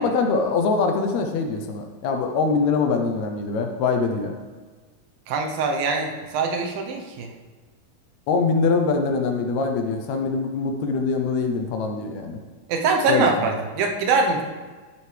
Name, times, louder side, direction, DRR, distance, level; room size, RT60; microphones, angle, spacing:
voice 1, 0.0-4.3 8.3-12.4 13.1-13.5, left 4 dB, 75° left, 4 dB, 1.7 m, -23 dB
voice 2, 5.3-7.3 12.7-14.4, right 4 dB, 85° right, 3 dB, 2.8 m, -23 dB
12.5 x 7.9 x 3.3 m, 1.4 s
omnidirectional pair, 4.1 m